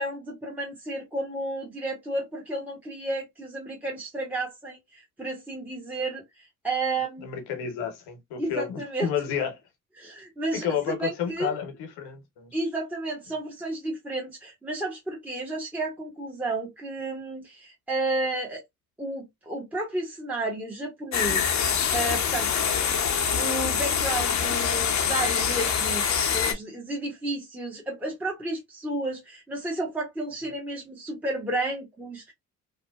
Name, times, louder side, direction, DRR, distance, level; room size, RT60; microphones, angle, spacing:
voice 1, 0.0-7.3 8.4-9.1 10.0-11.6 12.5-18.6 19.0-21.6 21.9-22.6 23.4-26.0 26.3-32.3, right 2 dB, 5° right, 0.9 m, -32 dB
voice 2, 7.2-9.6 10.5-12.5, left 7 dB, 75° left, 0.9 m, -31 dB
sound 1, 21.1-26.5, left 7 dB, 45° left, 0.7 m, -25 dB
2.6 x 2.1 x 2.3 m
hypercardioid pair, 55°, 39 cm